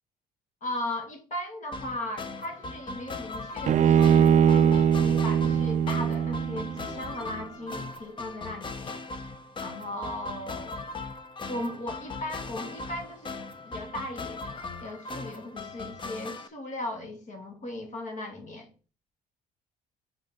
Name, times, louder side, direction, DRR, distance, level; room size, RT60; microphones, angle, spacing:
voice 1, 0.6-9.0 9.6-10.8 11.5-18.7, left 1 dB, 45° left, 2.2 m, -37 dB
sound 1, 1.7-16.5, left 3 dB, 30° left, 0.8 m, -39 dB
Bowed string instrument, 3.7-6.9, right 8 dB, 45° right, 0.4 m, -21 dB
5.2 x 3.9 x 5.8 m
cardioid pair, 110°, 17 cm